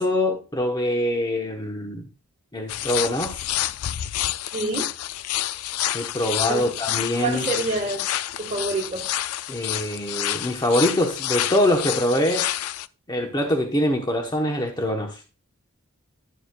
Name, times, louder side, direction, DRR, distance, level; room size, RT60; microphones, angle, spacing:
voice 1, 0.0-2.1 2.5-3.4 5.9-7.5 9.5-12.5 13.1-15.2, left 1 dB, 20° left, 1.0 m, -24 dB
sound 1, 2.7-12.9, left 13 dB, 75° left, 0.4 m, -29 dB
voice 2, 4.5-4.9 6.4-6.7 7.2-8.1 8.4-9.1, right 3 dB, 35° right, 1.5 m, -27 dB
11.0 x 7.0 x 2.3 m
head